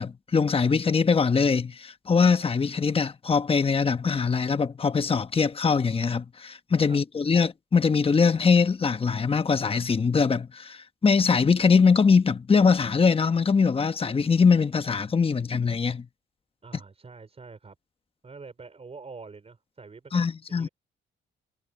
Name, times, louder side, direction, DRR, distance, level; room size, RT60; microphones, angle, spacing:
voice 1, 0.0-16.1 20.1-20.7, left 5 dB, 30° left, 1.2 m, -22 dB
voice 2, 16.6-17.7 18.2-20.7, right 4 dB, 30° right, 4.6 m, -45 dB
cardioid pair, 90°, 20 cm